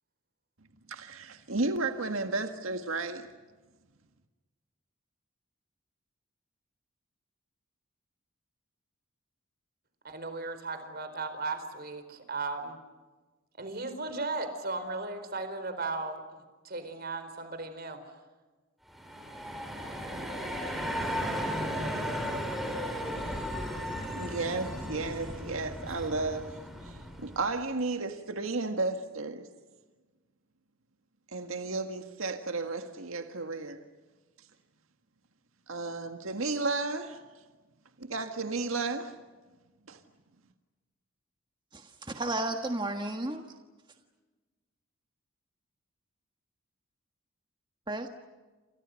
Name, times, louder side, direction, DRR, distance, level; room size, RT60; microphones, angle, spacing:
voice 1, 0.9-3.3 24.2-29.5 31.3-33.8 35.7-37.2 38.0-39.1 39.9-40.0, right 3 dB, 80° right, 6 dB, 1.8 m, -33 dB
voice 2, 10.0-12.8 13.6-18.0, right 3 dB, 50° right, 9 dB, 4.4 m, -36 dB
sound 1, 18.9-27.6, equal, ahead, 4.6 m, -35 dB
voice 3, 41.7-43.4 47.9-48.1, right 2 dB, 20° right, 4 dB, 1.5 m, -33 dB
29.0 x 27.5 x 6.4 m, 1.3 s
head